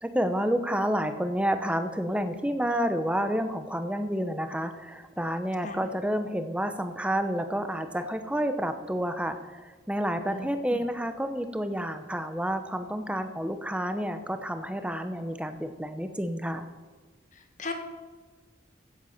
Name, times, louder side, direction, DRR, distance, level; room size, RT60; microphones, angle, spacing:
voice 1, 0.0-16.7, equal, 5° right, 9 dB, 0.8 m, -29 dB
voice 2, 17.3-17.7, left 2 dB, 40° left, 5 dB, 1.6 m, -37 dB
16.0 x 8.0 x 5.7 m, 1.3 s
head